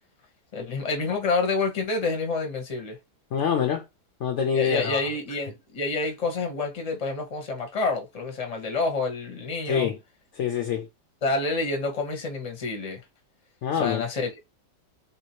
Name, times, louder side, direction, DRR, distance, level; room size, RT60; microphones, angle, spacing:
voice 1, 0.5-3.0 4.5-9.9 11.2-13.0 13.8-14.3, left 3 dB, 30° left, 0.7 m, -28 dB
voice 2, 3.3-3.8 4.2-5.0 9.7-10.0 10.3-10.9 13.6-14.0, left 7 dB, 75° left, 0.6 m, -25 dB
3.7 x 2.7 x 2.8 m
omnidirectional pair, 1.8 m